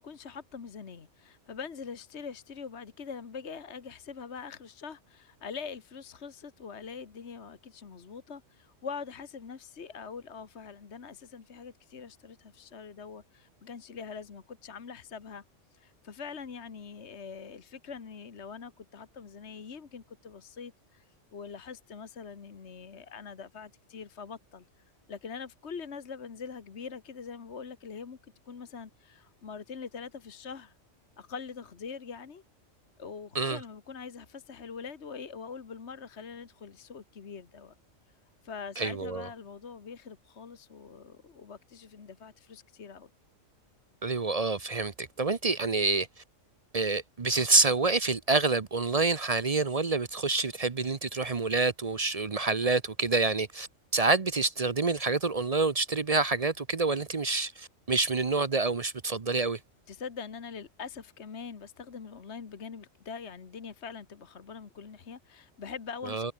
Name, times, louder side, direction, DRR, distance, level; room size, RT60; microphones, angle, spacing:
voice 1, 0.0-15.4 15.7-24.6 25.1-28.2 28.4-30.7 31.2-32.4 33.0-37.7 38.4-43.1 59.9-66.3, left 6 dB, 60° left, 1.7 m, -43 dB
voice 2, 38.8-39.3 44.0-46.1 46.7-53.7 53.9-59.6 66.1-66.3, right 3 dB, 35° right, 0.7 m, -27 dB
omnidirectional pair, 1.3 m